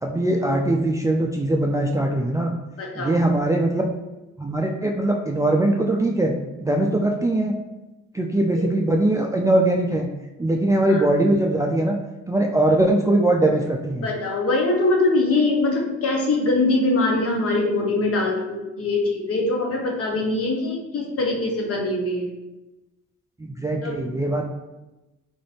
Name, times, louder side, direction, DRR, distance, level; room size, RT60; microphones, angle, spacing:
voice 1, 0.0-2.5 3.0-3.9 4.4-6.3 6.6-7.6 8.1-10.1 10.4-12.0 12.3-14.1 23.4-24.5, right 1 dB, 10° right, 0 dB, 0.3 m, -21 dB
voice 2, 2.8-3.1 8.6-8.7 10.9-11.1 14.0-22.3 23.8-23.9, left 2 dB, 50° left, 0 dB, 1.0 m, -22 dB
3.8 x 2.6 x 3.3 m, 1.0 s
cardioid pair, 90°, 30 cm